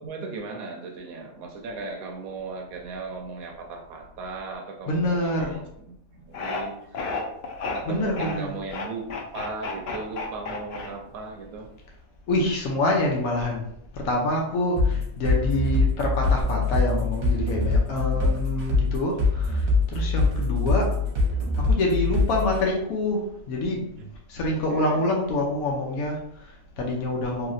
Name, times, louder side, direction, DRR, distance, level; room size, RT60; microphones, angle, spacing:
voice 1, 0.0-7.0 7.7-11.7 18.1-18.5 24.0-24.1 24.7-25.1, right 4 dB, 85° right, 2 dB, 1.1 m, -37 dB
voice 2, 4.9-5.6 7.8-8.6 12.3-13.7 13.9-21.0 21.6-23.9 24.3-27.5, left 1 dB, 90° left, 0 dB, 1.1 m, -26 dB
sound 1, 6.3-6.6 6.9-7.8 8.2-8.3 8.7-11.2, left 4 dB, 60° left, 0.7 m, -31 dB
sound 2, 14.8-22.6, left 3 dB, 45° right, 0.9 m, -23 dB
3.1 x 2.8 x 2.5 m, 0.73 s
omnidirectional pair, 1.5 m